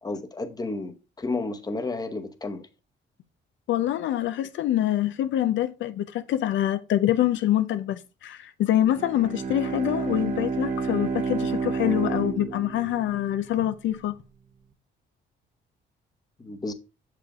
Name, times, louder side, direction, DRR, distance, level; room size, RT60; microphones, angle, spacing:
voice 1, 0.0-2.7 16.4-16.7, left 3 dB, 20° left, 1.0 m, -32 dB
voice 2, 3.7-14.2, left 12 dB, 75° left, 0.5 m, -25 dB
Bowed string instrument, 8.8-13.6, right 4 dB, 40° right, 1.1 m, -30 dB
6.6 x 5.0 x 3.6 m
cardioid pair, 90°, 20 cm